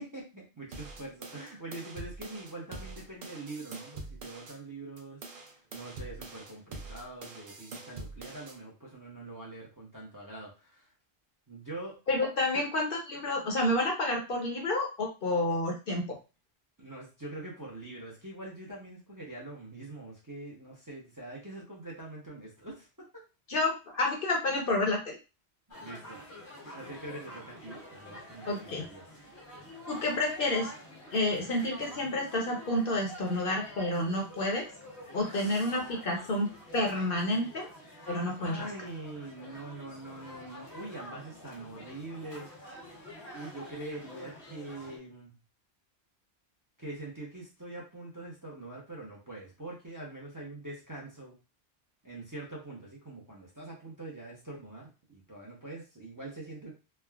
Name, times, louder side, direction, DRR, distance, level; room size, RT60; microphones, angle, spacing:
voice 1, 0.0-5.2 5.7-10.9 11.5-12.0 12.5-12.6 16.8-23.1 25.8-26.2 26.6-29.0 35.3-35.8 38.4-42.5 43.3-45.3 46.8-51.3 52.0-56.7, right 2 dB, 20° right, -4 dB, 0.6 m, -44 dB
sound 1, 0.7-4.6 5.0-8.6, right 3 dB, 60° right, 0.7 m, -44 dB
voice 2, 12.1-16.2 23.5-25.2 28.5-28.8 29.9-30.7 31.1-34.7 35.1-37.7 38.1-38.6, left 1 dB, 60° left, 1 dB, 0.8 m, -29 dB
sound 2, 25.7-45.0, equal, 80° left, 1.3 m, -48 dB
3.2 x 2.1 x 2.3 m, 0.30 s
omnidirectional pair, 1.1 m